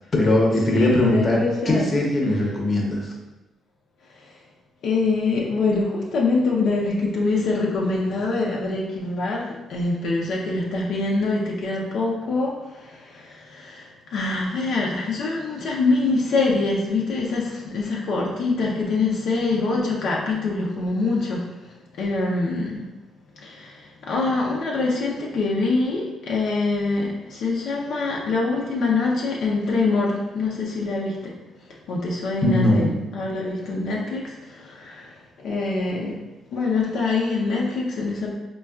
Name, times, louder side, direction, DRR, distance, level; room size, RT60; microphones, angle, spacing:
voice 1, 0.1-1.4 1.6-3.0 32.4-32.9, left 1 dB, 35° left, -1 dB, 0.7 m, -20 dB
voice 2, 0.7-1.9 2.2-2.4 4.8-12.5 12.8-21.5 22.0-22.8 23.4-23.8 24.1-31.3 31.9-32.9 33.1-35.1 35.4-36.2 36.5-38.3, left 3 dB, 75° left, -3 dB, 0.5 m, -24 dB
4.3 x 2.3 x 2.3 m, 1.1 s
cardioid pair, 90°, 0 cm